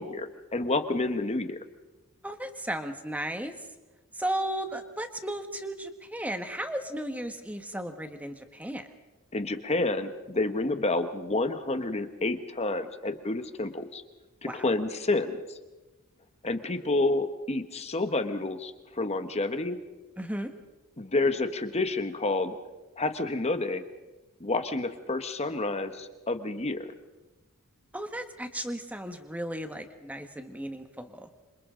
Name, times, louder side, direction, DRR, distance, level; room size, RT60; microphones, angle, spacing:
voice 1, 0.0-1.6 9.3-14.0 14.4-15.6 16.4-19.8 21.0-22.6 23.0-23.8 24.4-26.9, left 2 dB, 30° left, 9 dB, 1.2 m, -29 dB
voice 2, 2.2-3.5 4.1-8.9 14.4-14.6 20.2-20.5 27.9-31.3, right 1 dB, 5° right, 7 dB, 1.4 m, -35 dB
27.5 x 26.0 x 3.8 m, 1.1 s
head